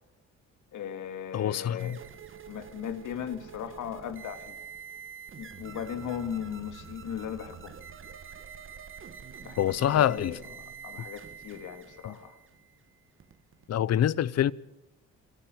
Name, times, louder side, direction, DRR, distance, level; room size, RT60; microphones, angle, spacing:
voice 1, 0.7-2.0 2.5-4.6 5.4-7.8 9.4-10.4 10.8-12.4, left 8 dB, 75° left, 2.5 m, -37 dB
voice 2, 1.3-2.0 9.6-10.4 12.1-12.2 13.7-14.5, left 10 dB, 55° left, 0.8 m, -25 dB
sound 1, 1.8-13.7, right 7 dB, 45° right, 1.6 m, -47 dB
26.0 x 13.5 x 9.4 m
cardioid pair, 90°, 30 cm